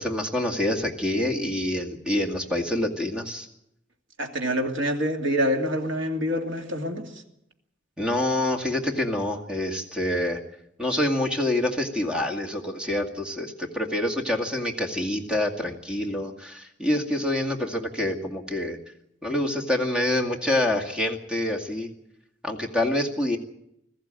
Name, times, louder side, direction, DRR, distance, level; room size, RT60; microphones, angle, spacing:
voice 1, 0.0-3.5 8.0-10.4 10.8-18.8 19.2-21.9 22.4-23.4, left 1 dB, 5° right, 2 dB, 2.2 m, -26 dB
voice 2, 4.2-7.1, equal, 80° right, 3 dB, 2.7 m, -26 dB
21.5 x 14.5 x 9.0 m, 0.81 s
head